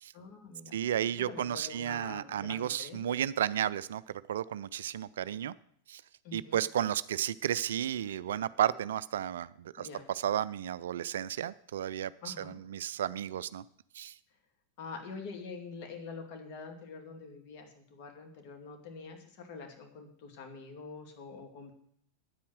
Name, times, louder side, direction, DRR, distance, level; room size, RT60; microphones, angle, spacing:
voice 1, 0.1-0.8 1.2-3.2 6.2-6.6 9.8-10.0 12.2-12.5 14.8-21.7, left 4 dB, 45° left, 4 dB, 2.4 m, -46 dB
voice 2, 0.7-5.5 5.9-6.0 6.3-13.6 13.9-14.1, right 10 dB, 60° right, 18 dB, 0.3 m, -33 dB
10.0 x 8.4 x 6.5 m, 0.65 s
figure-of-eight pair, 90°, 0 cm